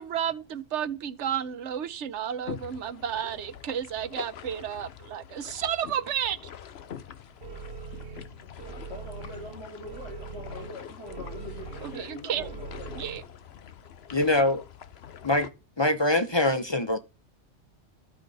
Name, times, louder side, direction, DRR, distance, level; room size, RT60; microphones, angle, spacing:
voice 1, 0.0-6.4 12.3-12.4 13.0-13.2, right 9 dB, 75° right, 1.0 m, -31 dB
sound 1, 2.5-15.5, left 9 dB, 65° left, 1.0 m, -45 dB
sound 2, 7.4-13.2, right 5 dB, 55° right, 1.1 m, -42 dB
voice 2, 8.5-13.0, left 2 dB, 90° left, 6.8 m, -43 dB
voice 3, 14.1-14.6 15.2-15.5 15.8-17.0, left 1 dB, 30° left, 0.6 m, -23 dB
13.0 x 8.5 x 4.0 m
omnidirectional pair, 1.2 m